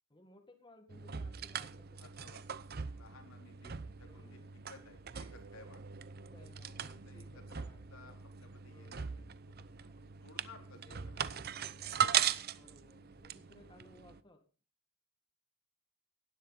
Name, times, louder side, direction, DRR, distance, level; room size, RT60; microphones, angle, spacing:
voice 1, 0.1-2.0 4.0-4.5 6.2-8.2 8.7-9.3 10.8-11.5 12.6-14.4, left 1 dB, 20° left, 5 dB, 1.8 m, -62 dB
sound 1, 0.9-14.2, right 8 dB, 50° right, 0.7 m, -39 dB
voice 2, 2.0-4.4 4.7-6.0 6.5-7.6 7.9-9.3 9.6-11.4, left 3 dB, 85° left, 3 dB, 4.2 m, -58 dB
17.0 x 12.0 x 4.1 m, 0.36 s
head